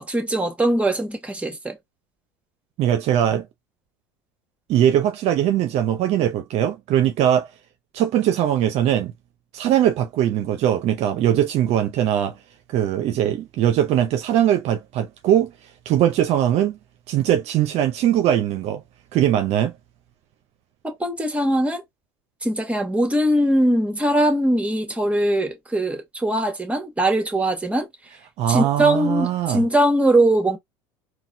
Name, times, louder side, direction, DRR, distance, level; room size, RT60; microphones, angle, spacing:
voice 1, 0.0-1.8 20.8-21.8 22.4-27.9 28.5-30.6, right 1 dB, 10° right, 1.5 m, -21 dB
voice 2, 2.8-3.5 4.7-7.5 7.9-9.1 9.5-12.4 12.7-15.5 15.9-16.8 17.1-18.8 19.1-19.7 28.4-29.6, right 11 dB, 55° right, 0.6 m, -20 dB
3.9 x 2.2 x 2.7 m
hypercardioid pair, 85°, 13 cm